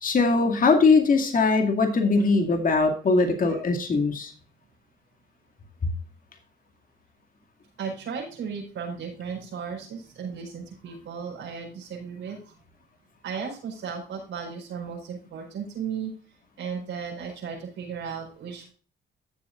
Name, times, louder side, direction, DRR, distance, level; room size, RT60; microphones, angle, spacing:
voice 1, 0.0-4.3, left 4 dB, 45° left, 3 dB, 2.3 m, -21 dB
voice 2, 7.8-12.5 13.2-16.1 16.6-18.7, right 6 dB, 80° right, -2 dB, 4.6 m, -35 dB
14.5 x 7.3 x 2.4 m, 0.38 s
cardioid pair, 90°, 20 cm